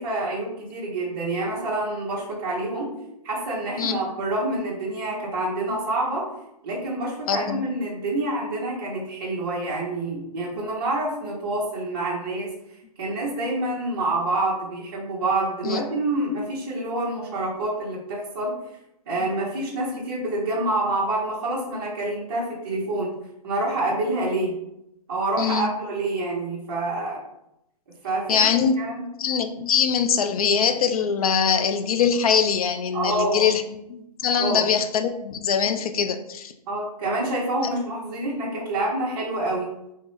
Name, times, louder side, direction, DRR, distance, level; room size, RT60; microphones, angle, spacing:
voice 1, 0.0-2.9 3.2-6.3 6.6-12.5 13.0-18.6 19.1-23.1 23.4-24.5 25.1-27.2 28.0-29.1 32.9-33.5 34.3-34.6 36.7-39.7, right 2 dB, 35° right, -5 dB, 0.8 m, -27 dB
voice 2, 7.3-7.7 15.6-15.8 25.4-25.7 28.3-28.8 29.2-33.6 33.9-36.5 37.6-37.7, left 7 dB, 65° left, 8 dB, 0.4 m, -22 dB
3.6 x 2.1 x 3.0 m, 0.83 s
hypercardioid pair, 180°, 20 cm